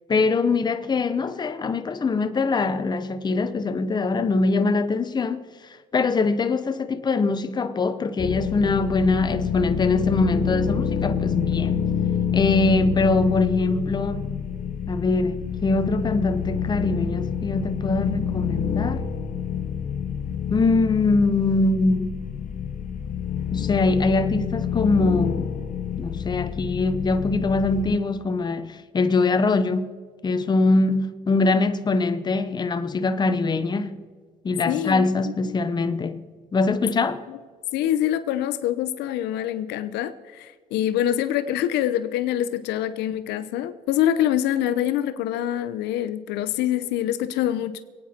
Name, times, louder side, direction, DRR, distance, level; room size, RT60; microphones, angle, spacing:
voice 1, 0.1-5.4 5.9-11.8 12.3-14.4 14.9-19.0 20.5-22.3 23.5-25.5 26.0-29.9 30.2-34.0 34.4-36.2 36.5-37.2, left 3 dB, 25° left, 0.9 m, -23 dB
sound 1, 8.2-28.0, left 7 dB, 50° left, 1.0 m, -27 dB
voice 2, 34.7-35.1 35.5-35.6 37.3-37.4 37.7-47.8, left 11 dB, 90° left, 0.8 m, -25 dB
26.0 x 9.3 x 4.4 m
cardioid pair, 110°, 17 cm